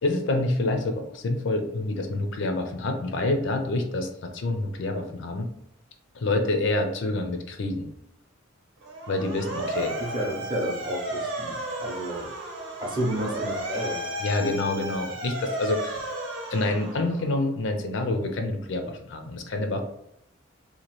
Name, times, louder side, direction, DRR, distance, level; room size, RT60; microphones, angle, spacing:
voice 1, 0.0-5.5 6.1-7.9 9.1-9.9 14.2-16.1 16.5-19.8, left 2 dB, 60° left, 5 dB, 0.4 m, -27 dB
Motor vehicle (road) / Siren, 8.8-17.4, right 1 dB, 70° right, 0.8 m, -34 dB
voice 2, 9.5-12.3 12.8-14.0, right 1 dB, 20° right, -2 dB, 0.6 m, -31 dB
2.9 x 2.3 x 3.0 m, 0.76 s
head